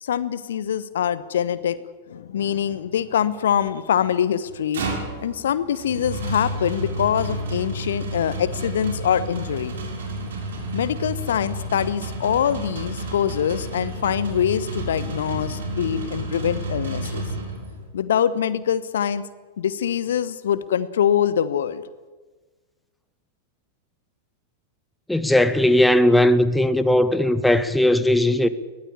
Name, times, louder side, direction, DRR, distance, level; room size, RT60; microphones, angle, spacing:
voice 1, 0.0-1.8 2.1-4.8 5.2-9.7 10.7-17.2 17.9-19.2 19.6-21.8, left 9 dB, 65° left, 1.1 m, -24 dB
sound 1, 4.4-17.9, right 1 dB, 60° right, 6.4 m, -31 dB
voice 2, 25.1-28.5, left 1 dB, 5° left, 1.4 m, -18 dB
22.0 x 17.5 x 9.9 m
figure-of-eight pair, 90°, 0 cm